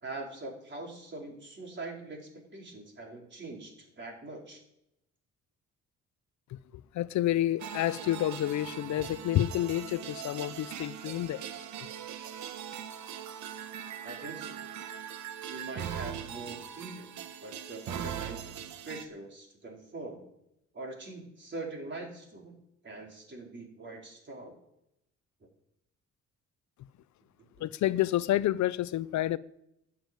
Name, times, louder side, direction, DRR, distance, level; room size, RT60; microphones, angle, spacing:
voice 1, 0.0-4.6 14.0-14.6 15.5-18.5 18.8-20.3 20.7-22.5 22.8-24.6, right 2 dB, 40° right, 4.5 m, -43 dB
voice 2, 6.9-11.4 27.6-29.4, left 13 dB, 70° left, 0.6 m, -29 dB
sound 1, 7.6-19.1, right 9 dB, 70° right, 1.2 m, -41 dB
12.0 x 7.2 x 9.2 m
cardioid pair, 90°, 30 cm